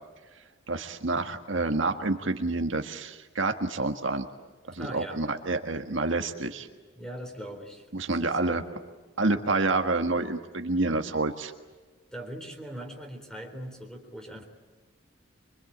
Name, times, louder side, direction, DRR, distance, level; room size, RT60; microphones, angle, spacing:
voice 1, 0.7-4.3 4.7-6.7 7.9-8.6 9.2-11.5, right 3 dB, 70° right, 6 dB, 1.7 m, -28 dB
voice 2, 4.7-5.2 7.0-7.9 8.2-8.7 12.1-14.5, right 1 dB, 5° left, 4 dB, 3.8 m, -40 dB
25.0 x 24.5 x 8.7 m, 1.3 s
head